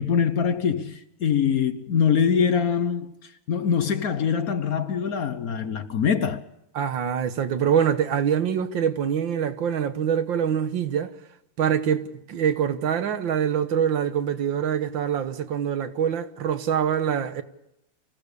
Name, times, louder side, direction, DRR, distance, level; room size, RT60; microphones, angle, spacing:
voice 1, 0.0-3.1 3.5-6.4, left 7 dB, 55° left, 1.2 m, -23 dB
voice 2, 6.8-11.1 11.6-17.4, right 8 dB, 75° right, 1.9 m, -24 dB
25.0 x 16.5 x 6.8 m
omnidirectional pair, 2.1 m